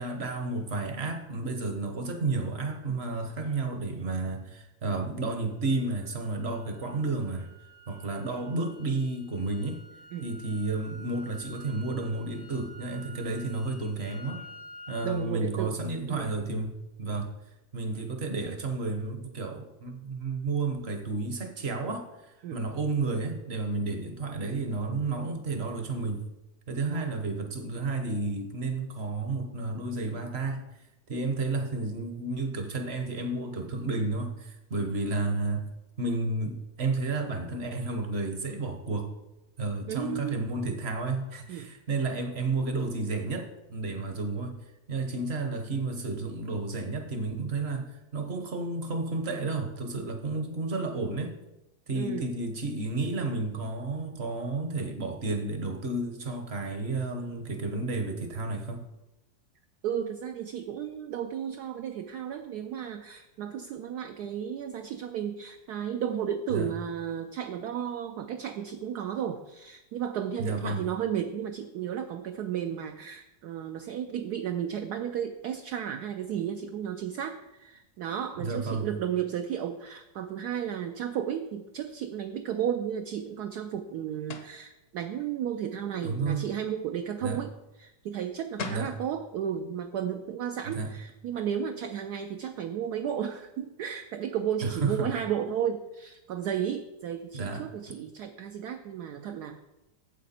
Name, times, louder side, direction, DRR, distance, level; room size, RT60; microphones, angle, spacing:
voice 1, 0.0-7.5 7.9-9.8 10.2-14.5 14.9-17.3 17.7-26.2 26.7-30.6 31.1-35.7 36.0-39.1 39.6-44.6 44.9-51.4 51.9-58.8 66.5-66.7 70.4-70.8 78.4-78.9 86.0-86.4 87.2-87.4 88.6-88.9 90.6-90.9 94.6-95.1 97.3-97.7, right 3 dB, 45° right, 5 dB, 1.0 m, -31 dB
sound 1, 5.5-15.2, right 1 dB, 85° left, 3.5 m, -50 dB
voice 2, 15.0-15.8 16.1-16.4 22.4-22.6 26.8-27.2 31.1-31.2 39.9-40.4 41.5-41.8 51.9-52.4 59.8-87.5 87.8-99.6, right 9 dB, 70° right, 6 dB, 1.0 m, -33 dB
sound 2, 84.3-84.6 88.2-88.3 88.6-88.9, left 4 dB, 55° left, 1.0 m, -37 dB
9.1 x 7.5 x 4.3 m, 0.97 s
omnidirectional pair, 2.0 m